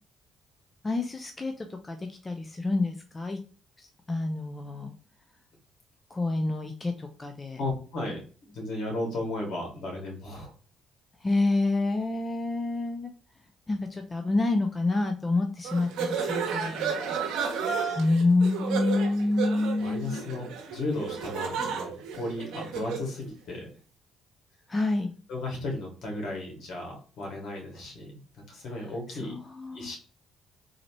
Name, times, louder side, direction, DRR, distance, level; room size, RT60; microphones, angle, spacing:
voice 1, 0.8-3.4 3.8-4.9 6.1-7.6 11.2-13.1 13.7-17.1 18.0-20.2 24.7-25.1 29.2-29.9, left 2 dB, 25° left, 5 dB, 0.6 m, -28 dB
voice 2, 7.6-10.5 19.8-23.7 25.3-28.2 28.5-29.4 29.7-30.0, left 2 dB, 65° left, 0 dB, 2.1 m, -35 dB
sound 1, 15.6-23.1, right 6 dB, 75° right, 0.9 m, -32 dB
3.9 x 3.1 x 3.0 m, 0.39 s
supercardioid pair, 65°, 0 cm